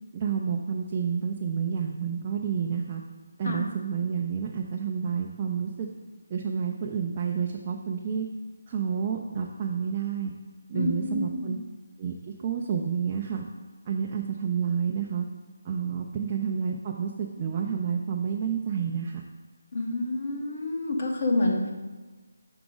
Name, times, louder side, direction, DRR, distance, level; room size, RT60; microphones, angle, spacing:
voice 1, 0.1-3.0 3.4-5.9 6.3-8.3 8.7-10.3 10.7-11.6 12.0-12.1 12.4-13.4 13.9-15.3 15.6-19.2, right 7 dB, 20° right, 0 dB, 0.3 m, -29 dB
voice 2, 10.7-11.6 19.7-21.7, left 2 dB, 40° left, 1 dB, 0.9 m, -28 dB
5.9 x 4.9 x 3.8 m, 1.3 s
figure-of-eight pair, 175°, 0 cm